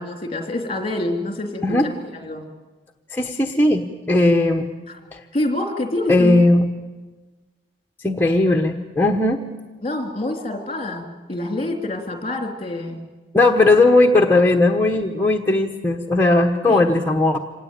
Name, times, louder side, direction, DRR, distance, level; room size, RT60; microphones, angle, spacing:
voice 1, 0.0-2.4 4.9-5.0 5.3-6.4 9.8-13.0 16.7-16.9, left 2 dB, 30° left, 4 dB, 3.1 m, -27 dB
voice 2, 3.1-4.7 5.1-5.2 6.1-6.7 8.0-9.4 13.3-17.4, left 2 dB, 10° left, 2 dB, 1.1 m, -17 dB
25.5 x 18.5 x 9.0 m, 1.2 s
head